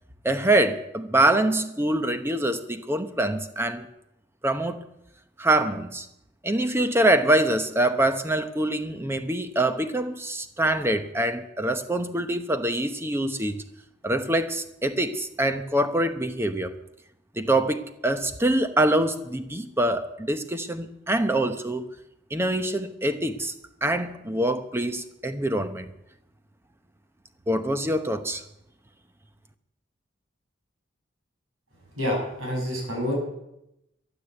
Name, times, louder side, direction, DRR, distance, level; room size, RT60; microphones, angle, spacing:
voice 1, 0.2-3.9 4.4-4.8 5.4-6.1 6.4-13.6 14.0-16.7 17.4-21.9 22.3-23.5 23.8-25.9 27.5-28.4, right 1 dB, 10° right, 9 dB, 0.9 m, -25 dB
voice 2, 32.0-33.1, left 1 dB, 90° right, -1 dB, 6.8 m, -28 dB
13.0 x 11.5 x 8.1 m, 0.86 s
head